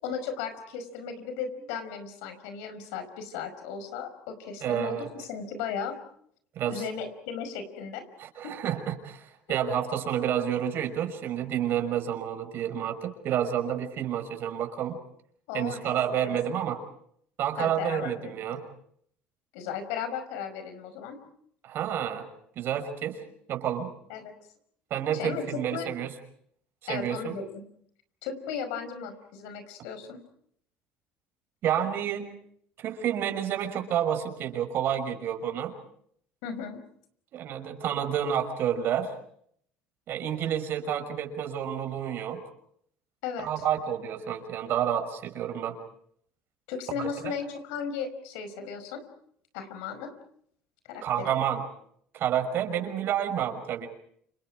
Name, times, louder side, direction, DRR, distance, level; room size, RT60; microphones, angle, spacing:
voice 1, 0.0-6.0 6.7-8.0 8.4-8.6 9.7-9.8 15.5-16.3 17.6-18.3 19.5-21.2 24.1-24.3 25.1-25.9 26.9-27.6 28.2-30.2 36.4-36.8 43.2-43.6 46.7-49.0 49.5-50.1 50.9-51.3, left 6 dB, 85° left, 9 dB, 5.3 m, -36 dB
voice 2, 4.6-5.1 6.6-6.8 8.2-15.0 15.5-16.8 17.4-18.7 21.6-22.3 22.6-23.2 23.5-23.9 24.9-26.1 26.9-27.4 31.6-32.3 32.8-35.8 37.3-39.1 40.1-42.4 43.4-45.8 47.0-47.3 51.0-51.7 52.1-53.9, right 9 dB, 60° right, 7 dB, 5.9 m, -29 dB
29.5 x 28.0 x 4.9 m, 0.67 s
supercardioid pair, 95°, 4 cm